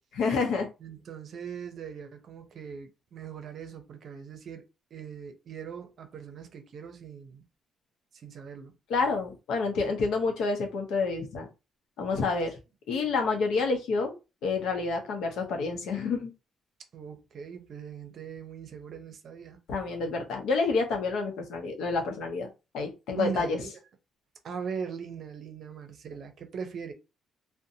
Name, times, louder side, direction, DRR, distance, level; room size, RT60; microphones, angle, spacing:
voice 1, 0.2-0.7 8.9-11.5 12.0-12.6 12.9-14.1 14.4-16.3 19.7-22.5 22.7-23.6, left 4 dB, 80° left, 0.7 m, -28 dB
voice 2, 0.8-4.6 4.9-7.4 8.1-8.8 16.9-19.6 23.1-23.8 24.4-26.9, right 6 dB, 60° right, 0.6 m, -40 dB
2.5 x 2.1 x 2.7 m
cardioid pair, 90°, 0 cm